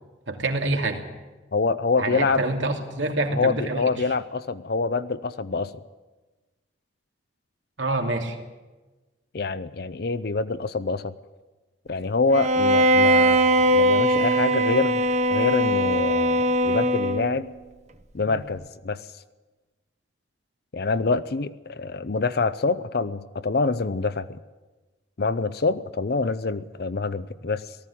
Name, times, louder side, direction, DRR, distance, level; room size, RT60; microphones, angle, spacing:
voice 1, 0.3-1.0 2.0-3.8 7.8-8.4, right 2 dB, 85° right, 3 dB, 2.7 m, -26 dB
voice 2, 1.5-2.4 3.3-5.7 9.3-11.1 11.9-15.0 15.3-17.5 18.1-19.0 20.7-24.4 25.2-27.8, left 4 dB, 55° left, 13 dB, 0.6 m, -26 dB
Bowed string instrument, 12.3-17.4, equal, 40° right, 0.9 m, -20 dB
18.5 x 14.0 x 10.0 m, 1.2 s
head